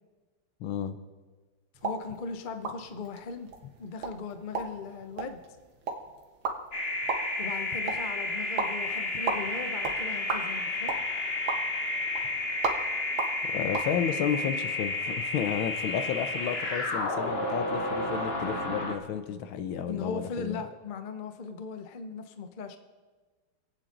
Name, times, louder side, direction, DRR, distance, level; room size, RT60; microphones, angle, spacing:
voice 1, 0.6-1.0 13.4-20.6, left 8 dB, 80° left, 10 dB, 1.6 m, -32 dB
sound 1, 1.7-13.9, right 4 dB, 85° right, 2.2 m, -37 dB
voice 2, 1.8-3.5 3.8-5.4 7.4-11.0 19.9-22.8, left 5 dB, 55° left, 8 dB, 0.5 m, -38 dB
sound 2, 6.7-19.0, left 2 dB, 35° left, 1.3 m, -31 dB
26.5 x 9.0 x 3.9 m, 1.3 s
omnidirectional pair, 2.2 m